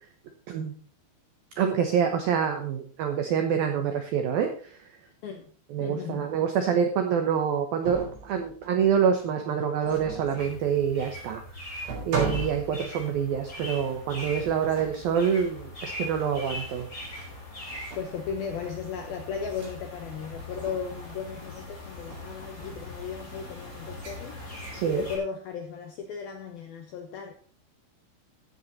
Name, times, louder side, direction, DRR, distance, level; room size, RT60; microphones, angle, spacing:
voice 1, 1.6-4.8 5.7-11.4 11.7-16.9 24.7-25.0, right 7 dB, 80° right, 2.1 m, -26 dB
voice 2, 5.8-6.3 18.0-24.4 24.9-27.3, left 6 dB, 75° left, 2.2 m, -36 dB
sound 1, 7.8-9.0 9.8-10.6 11.3-11.4 11.8-13.3 14.1-15.1 16.0-16.3 17.0-17.4 17.7-18.3 19.4-19.7 20.4-21.0 21.5-21.7 21.9-22.3 23.9-24.2 24.5-24.9, right 3 dB, 45° right, 6.3 m, -38 dB
sound 2, 10.4-25.2, left 1 dB, 20° left, 4.4 m, -41 dB
15.0 x 8.1 x 4.2 m
omnidirectional pair, 5.8 m